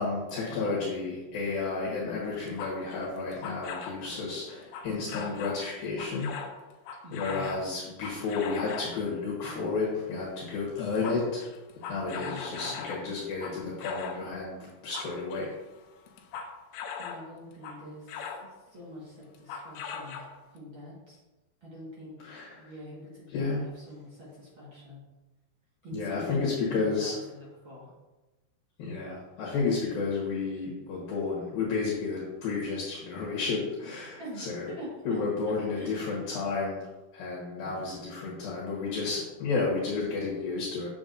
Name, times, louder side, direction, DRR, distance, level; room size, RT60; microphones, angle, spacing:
voice 1, 0.0-6.3 7.1-11.4 11.9-15.5 22.2-22.6 23.3-23.6 25.9-27.2 28.8-34.7 35.1-36.8 37.1-40.9, left 4 dB, 70° left, -5 dB, 2.9 m, -31 dB
sound 1, 2.3-4.0 4.7-5.6 6.0-9.0 10.1-10.3 10.6-14.3 14.7-17.3 17.6-18.5 19.3-20.6, left 6 dB, 90° left, 2.7 m, -40 dB
voice 2, 7.0-7.7 12.1-12.8 17.0-18.3 18.7-20.3 20.5-21.2 21.6-22.1 22.6-25.0 25.8-27.9 34.2-35.2 35.7-36.1 37.6-37.8, left 1 dB, 50° right, -6 dB, 1.6 m, -44 dB
7.9 x 7.0 x 2.6 m, 1.1 s
omnidirectional pair, 4.5 m